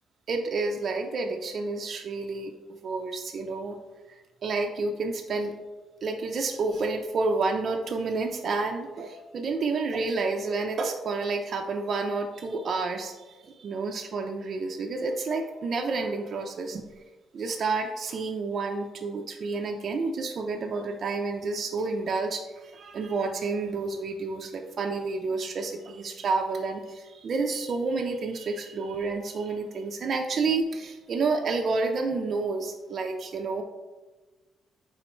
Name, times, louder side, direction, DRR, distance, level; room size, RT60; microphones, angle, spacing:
voice 1, 0.3-3.8 4.1-5.5 6.0-16.8 17.3-33.6, right 3 dB, 55° right, 3 dB, 0.4 m, -30 dB
3.8 x 3.0 x 4.3 m, 1.2 s
cardioid pair, 90°, 0 cm